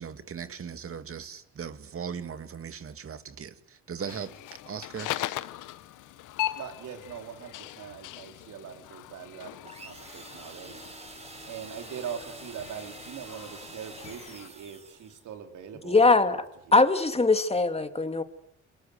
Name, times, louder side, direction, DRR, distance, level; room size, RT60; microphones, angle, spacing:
voice 1, 0.0-4.3 4.7-5.1, right 7 dB, 45° right, 2.3 m, -38 dB
sound 1, 4.0-14.5, left 14 dB, 90° left, 1.0 m, -40 dB
voice 2, 6.6-10.8 11.4-16.9, right 8 dB, 80° right, 4.2 m, -42 dB
sound 2, 9.6-15.3, right 2 dB, 20° right, 4.1 m, -46 dB
voice 3, 15.8-16.4 16.7-18.2, left 3 dB, 20° left, 2.6 m, -21 dB
28.5 x 24.5 x 8.2 m
cardioid pair, 90°, 30 cm